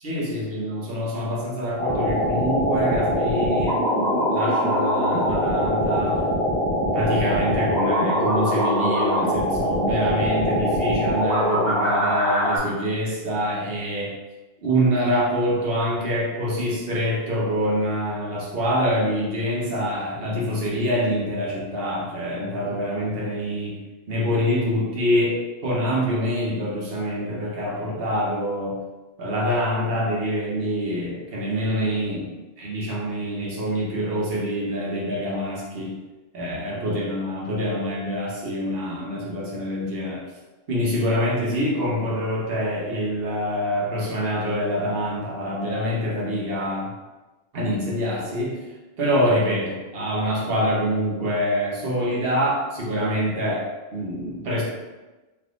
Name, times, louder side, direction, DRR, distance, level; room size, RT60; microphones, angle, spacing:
voice 1, 0.0-6.2 6.9-14.1 14.6-23.8 24.1-28.8 29.2-35.9 36.3-40.2 40.7-46.9 47.5-48.6 49.0-54.6, equal, 65° right, -4 dB, 1.0 m, -25 dB
sound 1, 1.8-12.6, equal, 50° left, 1.2 m, -23 dB
3.4 x 2.7 x 2.4 m, 1.1 s
omnidirectional pair, 1.1 m